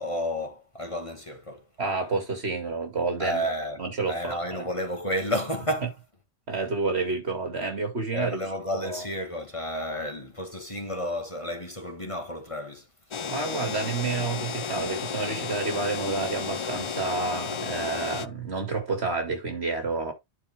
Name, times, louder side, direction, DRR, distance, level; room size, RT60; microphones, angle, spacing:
voice 1, 0.0-1.7 3.2-5.9 8.1-12.9, equal, 30° left, 1.7 m, -31 dB
voice 2, 1.8-3.4 3.8-4.7 6.5-8.4 8.7-9.1 13.3-20.1, right 3 dB, 65° right, 2.7 m, -29 dB
sound 1, 13.1-18.3, left 6 dB, 55° left, 0.3 m, -33 dB
10.5 x 4.7 x 3.5 m
omnidirectional pair, 1.2 m